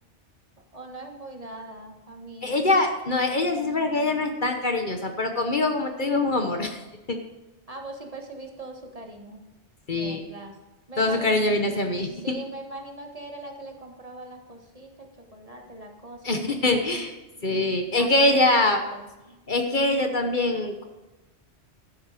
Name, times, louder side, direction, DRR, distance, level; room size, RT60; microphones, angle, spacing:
voice 1, 0.7-2.7 7.7-9.4 9.9-10.5 10.9-11.4 12.1-16.4 18.0-19.1, right 2 dB, 35° right, 2 dB, 1.6 m, -41 dB
voice 2, 2.4-6.8 7.1-7.2 9.9-10.3 11.0-12.4 16.2-17.1 17.4-18.8 19.5-20.8, left 2 dB, 45° left, 5 dB, 1.2 m, -23 dB
12.5 x 9.5 x 5.0 m, 1.1 s
omnidirectional pair, 1.2 m